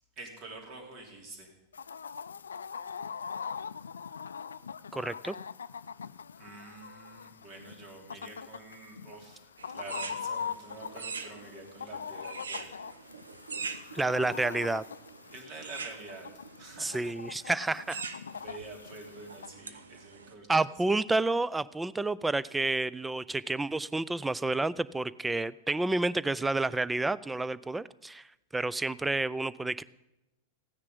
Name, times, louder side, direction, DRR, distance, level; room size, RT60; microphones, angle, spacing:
voice 1, 0.2-1.5 6.4-12.7 15.3-16.3 16.6-17.0 18.3-20.7, right 3 dB, 45° right, 2 dB, 3.3 m, -47 dB
Chicken rooster, 1.7-19.5, left 6 dB, 80° left, 0.4 m, -42 dB
voice 2, 4.9-5.3 13.9-14.8 16.8-18.0 20.5-28.2 28.5-29.8, right 2 dB, 10° right, 19 dB, 0.4 m, -30 dB
sound 1, 9.6-20.3, right 5 dB, 80° right, 0.9 m, -44 dB
15.0 x 9.7 x 5.4 m, 0.91 s
figure-of-eight pair, 95°, 0 cm